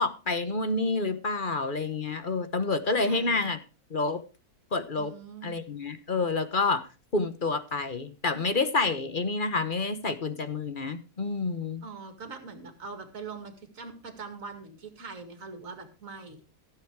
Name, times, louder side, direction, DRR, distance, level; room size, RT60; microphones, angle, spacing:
voice 1, 0.0-3.6 3.9-4.2 4.7-5.1 5.4-6.9 7.1-11.8, left 3 dB, 35° left, 11 dB, 1.1 m, -28 dB
voice 2, 3.0-3.5 5.0-5.6 11.8-16.4, right 4 dB, 60° right, 7 dB, 2.6 m, -42 dB
15.5 x 8.0 x 4.7 m, 0.33 s
omnidirectional pair, 1.6 m